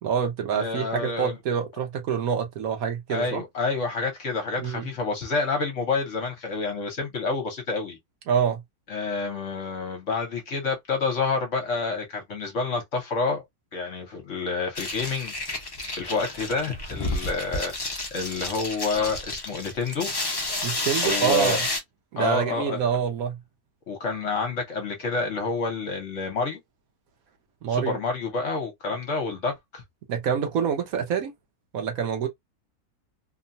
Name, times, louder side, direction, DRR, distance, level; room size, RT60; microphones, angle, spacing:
voice 1, 0.0-3.4 4.6-4.9 8.3-8.6 20.6-21.6 22.1-23.4 27.6-28.0 30.1-31.3 31.7-32.3, right 7 dB, 70° right, 1.1 m, -26 dB
voice 2, 0.5-1.4 3.1-8.0 8.9-13.4 13.7-15.3 15.9-20.1 21.0-21.6 22.2-22.8 23.9-26.6 27.7-29.8, left 4 dB, 55° left, 1.1 m, -28 dB
sound 1, 14.8-21.8, left 2 dB, 35° left, 0.4 m, -30 dB
3.0 x 2.2 x 2.5 m
omnidirectional pair, 1.7 m